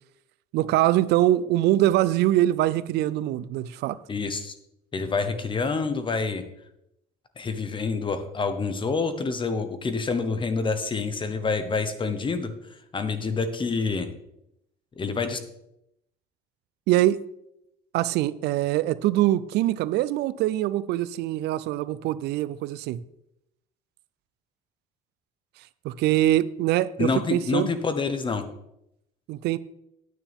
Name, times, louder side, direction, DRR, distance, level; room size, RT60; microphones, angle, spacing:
voice 1, 0.5-4.0 16.9-17.2 17.9-23.0 25.8-27.7 29.3-29.6, right 14 dB, 80° right, 0.5 m, -23 dB
voice 2, 4.1-4.6 4.9-6.4 7.4-12.5 12.9-14.1 15.0-15.4 27.0-28.5, left 4 dB, 30° left, 1.1 m, -27 dB
9.6 x 9.0 x 3.6 m
cardioid pair, 110°, 17 cm